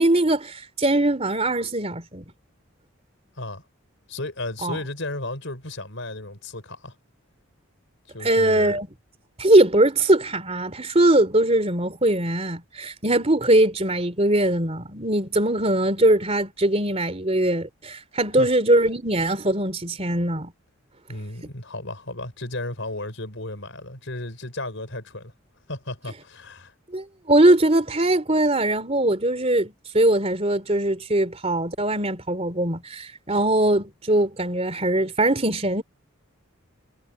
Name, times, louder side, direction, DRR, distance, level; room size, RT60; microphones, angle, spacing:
voice 1, 0.0-2.2 4.6-4.8 8.2-8.9 9.4-20.5 26.9-35.8, right 1 dB, 30° right, 3.1 m, -21 dB
voice 2, 4.1-6.9 8.1-8.8 18.4-18.5 21.1-25.3 25.7-26.7, left 2 dB, 60° left, 5.8 m, -34 dB
head